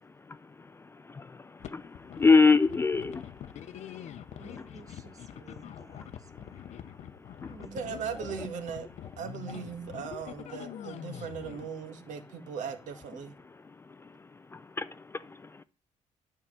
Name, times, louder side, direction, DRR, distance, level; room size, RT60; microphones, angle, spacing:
voice 1, 0.8-3.4 4.6-4.7 7.4-7.5 14.5-15.6, left 4 dB, 20° left, 0.3 m, -26 dB
sound 1, 1.6-11.7, left 10 dB, 60° left, 0.6 m, -45 dB
voice 2, 4.4-6.6 7.5-8.0, right 3 dB, 25° right, 1.3 m, -52 dB
voice 3, 7.7-8.9 9.2-13.3, right 6 dB, 70° right, 1.7 m, -38 dB
9.9 x 4.7 x 7.3 m
cardioid pair, 125°, 13 cm